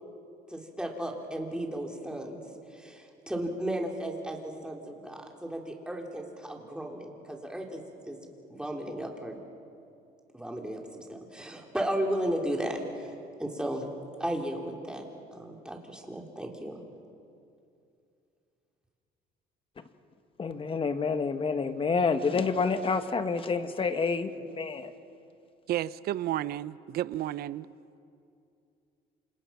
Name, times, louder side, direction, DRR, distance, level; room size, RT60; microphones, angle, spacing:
voice 1, 0.5-2.4 2.7-8.2 8.5-9.4 10.3-13.1 13.4-13.9 14.2-15.1 15.3-16.8, right 1 dB, 5° right, 0 dB, 3.7 m, -35 dB
voice 2, 20.4-24.9, left 4 dB, 30° left, 9 dB, 1.5 m, -28 dB
voice 3, 25.7-27.7, right 13 dB, 65° right, 18 dB, 0.6 m, -32 dB
28.5 x 27.5 x 5.9 m, 2.5 s
cardioid pair, 110°, 17 cm